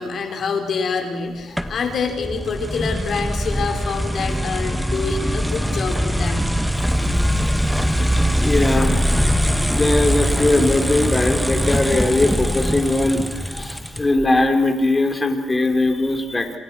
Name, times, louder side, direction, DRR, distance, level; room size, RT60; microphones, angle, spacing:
voice 1, 0.0-6.5, left 5 dB, 55° left, 3 dB, 5.6 m, -26 dB
sound 1, 1.6-14.3, equal, ahead, 1.8 m, -22 dB
voice 2, 5.4-5.8 7.3-7.5 8.4-9.1 9.7-16.6, left 2 dB, 20° left, 6 dB, 4.2 m, -20 dB
29.0 x 27.5 x 6.3 m, 1.2 s
cardioid pair, 90°, 0 cm